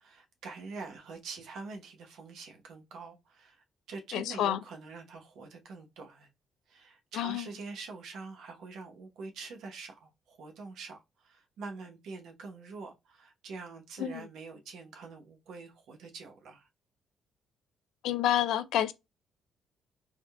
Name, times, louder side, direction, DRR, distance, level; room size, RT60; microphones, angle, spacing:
voice 1, 0.0-6.3 6.7-16.7, right 4 dB, 80° right, 0.9 m, -45 dB
voice 2, 4.1-4.6 7.1-7.5 14.0-14.2 18.0-18.9, left 11 dB, 85° left, 0.3 m, -28 dB
3.6 x 2.2 x 2.2 m
cardioid pair, 90°, 0 cm